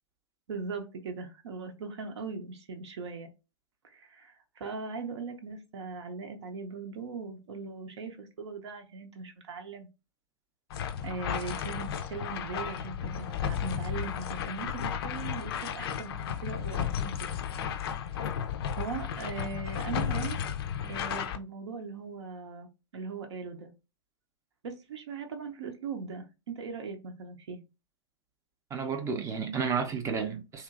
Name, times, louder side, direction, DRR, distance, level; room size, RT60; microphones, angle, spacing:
voice 1, 0.5-3.3 3.8-9.9 11.0-17.4 18.2-18.3 18.8-20.4 20.9-22.7 22.9-23.7 24.6-27.6, right 4 dB, 70° right, 0.6 m, -39 dB
sound 1, 10.7-21.4, left 8 dB, 55° left, 0.4 m, -33 dB
voice 2, 28.7-30.6, right 6 dB, 20° right, 0.5 m, -31 dB
2.9 x 2.5 x 2.4 m
figure-of-eight pair, 105°, 15 cm